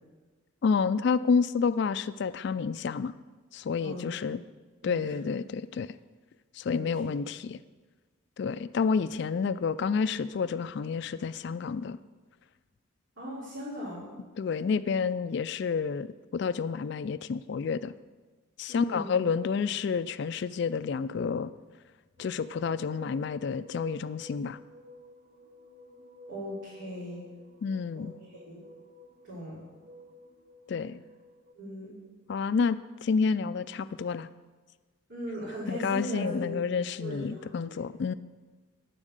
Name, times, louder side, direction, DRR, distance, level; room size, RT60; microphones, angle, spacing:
voice 1, 0.6-3.1 3.5-4.4 4.8-5.9 6.6-7.6 8.4-12.0 14.4-16.1 16.3-17.9 18.6-21.5 22.2-24.6 27.6-28.1 30.7-31.0 32.3-34.3 35.7-38.1, left 5 dB, 55° left, 15 dB, 0.3 m, -29 dB
voice 2, 3.8-4.1 4.8-5.3 6.7-7.1 13.2-14.1 18.7-19.3 26.3-27.2 27.9-28.6 29.2-29.6 31.6-31.9 35.1-36.6 37.0-37.9, equal, 65° right, -10 dB, 3.5 m, -39 dB
sound 1, 22.2-31.5, equal, 50° right, 0.9 m, -52 dB
10.0 x 7.2 x 6.6 m, 1.3 s
head